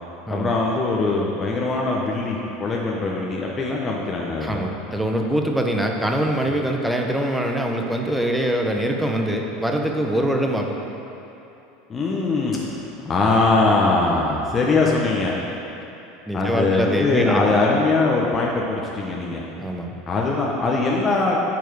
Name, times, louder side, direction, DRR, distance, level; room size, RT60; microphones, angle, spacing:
voice 1, 0.3-4.6 6.5-6.6 11.9-12.6 13.0-15.3 16.3-19.5 20.1-21.4, left 3 dB, 25° left, -3 dB, 1.0 m, -21 dB
voice 2, 4.4-10.8 16.3-17.6 19.6-20.0, right 1 dB, 5° right, 2 dB, 1.0 m, -23 dB
9.1 x 4.7 x 6.3 m, 2.9 s
hypercardioid pair, 80°, 0 cm